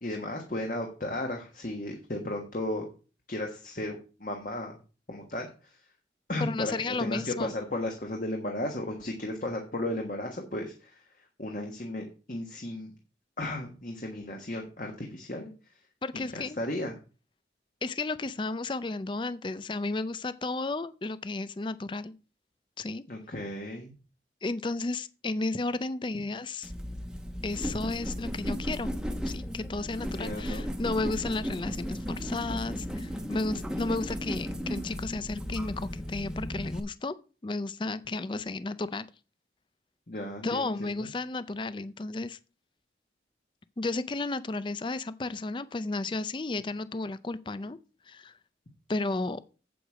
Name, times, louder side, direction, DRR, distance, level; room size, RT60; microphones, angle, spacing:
voice 1, 0.0-2.9 3.3-4.8 5.1-5.8 6.3-11.0 11.4-12.9 13.4-15.5 16.1-16.9 23.1-23.9 30.2-30.7 40.1-40.7 41.0-41.1, left 1 dB, 45° left, 1.4 m, -35 dB
voice 2, 6.4-7.5 16.0-16.6 17.8-22.1 22.8-23.0 24.4-26.7 27.4-28.9 29.2-37.1 37.4-39.1 40.4-42.4 43.8-47.8 48.1-48.3 48.9-49.4, left 3 dB, 25° left, 0.4 m, -33 dB
sound 1, 26.6-36.8, equal, 5° right, 0.9 m, -35 dB
8.1 x 7.8 x 4.9 m
head